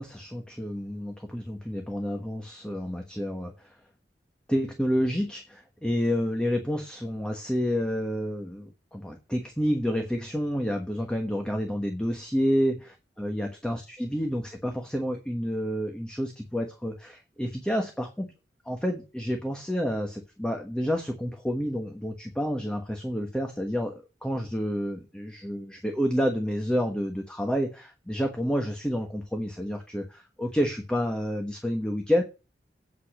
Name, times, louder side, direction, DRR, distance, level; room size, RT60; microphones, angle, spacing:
voice 1, 0.0-3.7 4.5-18.3 18.6-32.2, equal, 5° left, 3 dB, 1.2 m, -29 dB
8.3 x 5.4 x 7.4 m, 0.30 s
head